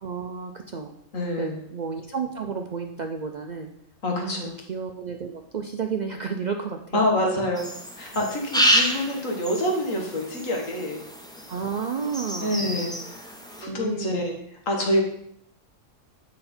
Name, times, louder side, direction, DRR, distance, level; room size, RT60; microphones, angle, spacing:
voice 1, 0.0-0.9 1.4-3.7 4.1-7.0 8.1-8.3 11.5-12.6 13.6-14.3, right 6 dB, 60° right, 4 dB, 0.4 m, -32 dB
voice 2, 1.1-1.6 4.0-4.6 6.9-7.6 8.0-11.0 12.4-12.9 13.6-14.3 14.7-15.0, left 1 dB, 85° left, 0 dB, 1.9 m, -26 dB
sound 1, 7.5-13.6, equal, 5° left, 0.6 m, -28 dB
7.8 x 5.2 x 4.3 m, 0.73 s
omnidirectional pair, 1.3 m